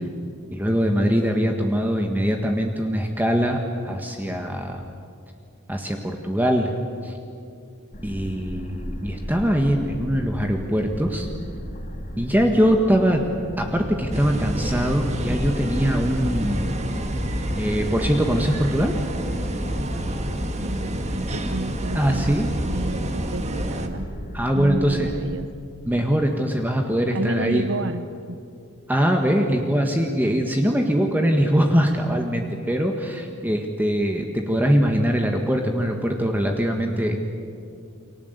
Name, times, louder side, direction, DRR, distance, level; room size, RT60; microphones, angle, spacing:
voice 1, 0.5-4.8 5.7-6.7 7.0-7.1 8.0-11.3 12.2-13.2 13.6-16.8 17.6-19.0 21.9-22.5 24.3-25.1 25.9-27.6 28.9-37.2, equal, 10° right, 2 dB, 1.6 m, -22 dB
sound 1, 7.9-25.4, equal, 40° left, 2.5 m, -36 dB
sound 2, 14.1-23.9, right 1 dB, 30° right, 1.8 m, -28 dB
voice 2, 20.6-22.4 22.6-24.1 24.5-25.5 27.1-28.4, right 2 dB, 60° right, 10 dB, 0.8 m, -31 dB
29.5 x 24.0 x 8.2 m, 2.4 s
head